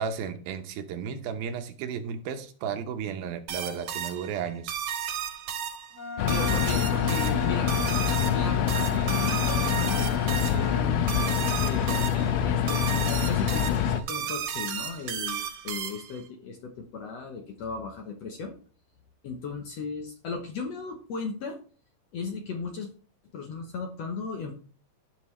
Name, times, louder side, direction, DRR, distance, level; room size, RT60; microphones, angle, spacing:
voice 1, 0.0-4.7, right 7 dB, 85° right, 7 dB, 2.8 m, -33 dB
sound 1, 3.5-16.2, right 9 dB, 65° right, 2.3 m, -34 dB
Wind instrument woodwind instrument, 5.9-10.9, left 3 dB, 25° left, 1.7 m, -38 dB
sound 2, 6.2-14.0, left 9 dB, 85° left, 2.4 m, -25 dB
voice 2, 6.2-7.7 8.3-11.1 11.6-18.5 19.2-21.6 22.1-22.9 23.3-24.5, left 4 dB, 65° left, 3 dB, 1.7 m, -36 dB
14.5 x 5.3 x 3.2 m, 0.40 s
omnidirectional pair, 4.1 m